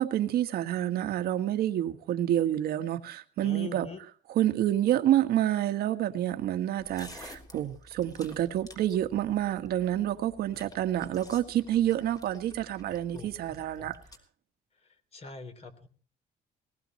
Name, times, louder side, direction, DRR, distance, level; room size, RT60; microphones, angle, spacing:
voice 1, 0.0-3.9 4.3-14.0, right 12 dB, 70° right, 1.6 m, -28 dB
voice 2, 3.4-4.0 10.5-10.7 13.1-13.3 13.8-13.9 14.8-15.9, left 4 dB, 40° left, 3.4 m, -43 dB
sound 1, 6.8-14.2, left 1 dB, 20° left, 3.4 m, -51 dB
20.0 x 18.5 x 3.1 m
cardioid pair, 115°, 17 cm